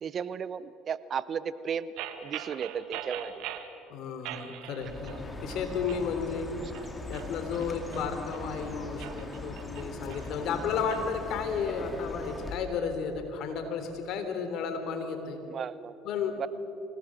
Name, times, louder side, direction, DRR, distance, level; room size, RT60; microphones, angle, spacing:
voice 1, 0.0-3.4 15.5-16.0 16.4-16.5, right 7 dB, 45° right, 16 dB, 0.8 m, -35 dB
sound 1, 2.0-3.7 4.2-5.2 5.5-6.1 6.6-8.4 8.9-11.0, right 11 dB, 70° right, 1.6 m, -42 dB
voice 2, 3.9-6.5 7.1-15.4 16.0-16.4, left 6 dB, 60° left, 7 dB, 3.5 m, -33 dB
Chirp tweet, 4.8-12.6, left 2 dB, 15° left, 3.0 m, -40 dB
25.5 x 18.0 x 7.7 m, 2.9 s
hypercardioid pair, 75°, 0 cm